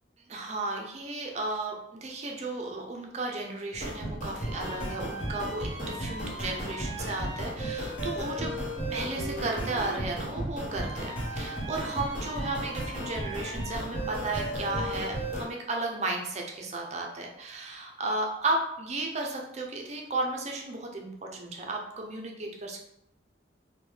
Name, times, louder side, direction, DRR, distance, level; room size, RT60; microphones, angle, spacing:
voice 1, 0.3-8.6 8.9-22.8, right 2 dB, 35° right, 1 dB, 0.5 m, -34 dB
sound 1, 3.7-15.5, right 1 dB, 40° left, 1.1 m, -34 dB
3.5 x 2.2 x 3.2 m, 0.77 s
head